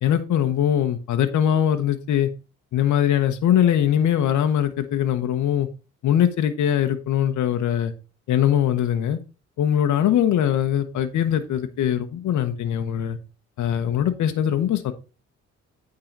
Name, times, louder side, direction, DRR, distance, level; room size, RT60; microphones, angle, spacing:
voice 1, 0.0-2.3 2.7-5.7 6.0-7.9 8.3-9.2 9.6-13.2 13.6-14.9, left 10 dB, 70° left, 1.0 m, -21 dB
8.9 x 3.9 x 5.2 m
cardioid pair, 90°, 30 cm